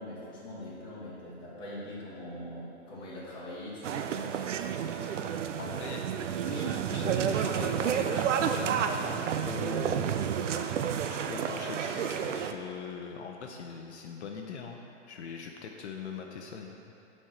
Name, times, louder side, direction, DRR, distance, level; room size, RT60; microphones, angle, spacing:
voice 1, 0.0-4.3, left 1 dB, 15° left, -9 dB, 1.7 m, -42 dB
sound 1, 3.8-12.5, right 8 dB, 80° right, 0.6 m, -30 dB
voice 2, 5.6-6.0 6.5-10.4 11.1-14.8 15.1-16.7, left 5 dB, 65° left, 2 dB, 0.8 m, -41 dB
7.3 x 4.5 x 6.5 m, 2.8 s
hypercardioid pair, 160°, 36 cm